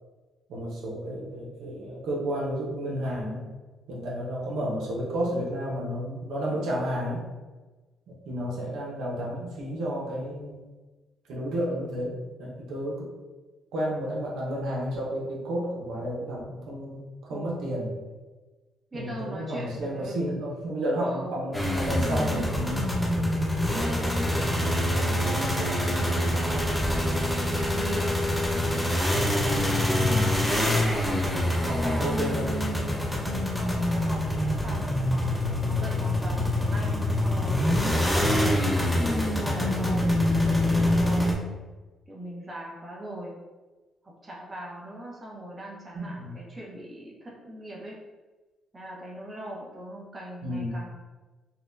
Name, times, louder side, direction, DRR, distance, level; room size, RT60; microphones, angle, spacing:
voice 1, 0.5-3.4 3.9-7.2 8.1-10.6 11.3-13.1 13.7-17.9 18.9-22.9 29.9-30.4 31.5-32.5 45.9-46.3 50.4-50.8, equal, 85° right, -4 dB, 0.8 m, -31 dB
voice 2, 17.3-17.6 18.9-20.2 21.0-21.5 23.7-28.2 31.0-32.3 33.5-39.0 39.4-41.5 42.1-43.3 44.0-48.0 48.7-50.9, right 1 dB, 25° right, -4 dB, 1.0 m, -40 dB
sound 1, 21.5-41.3, left 1 dB, 5° left, 0.8 m, -25 dB
4.2 x 2.2 x 2.6 m, 1.2 s
cardioid pair, 90°, 0 cm